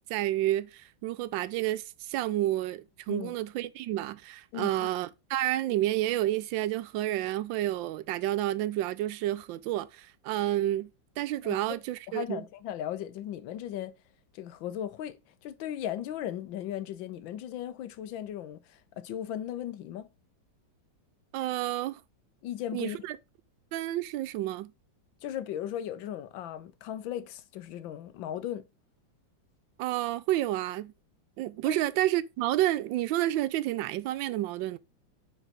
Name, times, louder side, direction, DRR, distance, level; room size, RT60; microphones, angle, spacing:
voice 1, 0.1-10.9 11.2-12.4 21.3-22.0 22.7-23.2 23.7-24.7 29.8-30.9 31.4-34.8, right 14 dB, 85° right, 1.3 m, -30 dB
voice 2, 4.5-4.9 11.4-11.6 12.1-13.9 14.3-15.2 15.4-20.1 22.4-23.0 25.2-28.6 31.7-31.8, left 11 dB, 90° left, 1.5 m, -37 dB
9.2 x 4.0 x 3.7 m
omnidirectional pair, 2.0 m